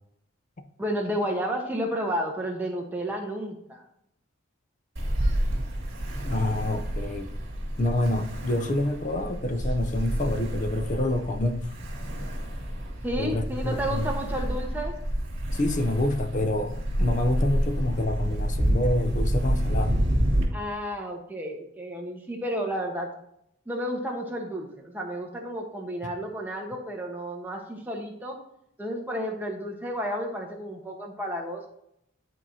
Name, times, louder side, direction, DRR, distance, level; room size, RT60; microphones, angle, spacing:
voice 1, 0.8-3.8 13.0-14.9 20.5-23.1 23.7-28.4 28.8-31.7, equal, 10° right, -1 dB, 1.1 m, -31 dB
Ocean, 5.0-20.4, equal, 55° right, 2.1 m, -29 dB
voice 2, 6.2-7.3 7.8-11.7 13.2-14.1 15.5-20.0 26.0-26.1, left 1 dB, 35° left, 7 dB, 0.6 m, -27 dB
11.0 x 4.5 x 2.7 m, 0.76 s
head